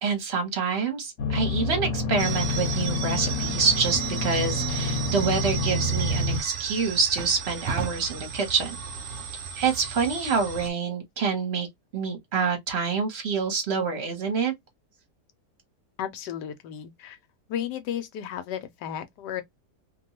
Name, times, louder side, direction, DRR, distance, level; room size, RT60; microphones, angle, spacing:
voice 1, 0.0-8.8 9.6-11.7 11.9-14.5, right 5 dB, 45° right, 1.0 m, -27 dB
sound 1, 1.2-6.4, left 2 dB, 60° left, 1.2 m, -28 dB
sound 2, 2.2-10.7, right 7 dB, 65° right, 0.7 m, -34 dB
voice 2, 16.0-17.2 17.5-19.4, left 10 dB, 80° left, 1.2 m, -34 dB
2.8 x 2.2 x 2.9 m
omnidirectional pair, 1.8 m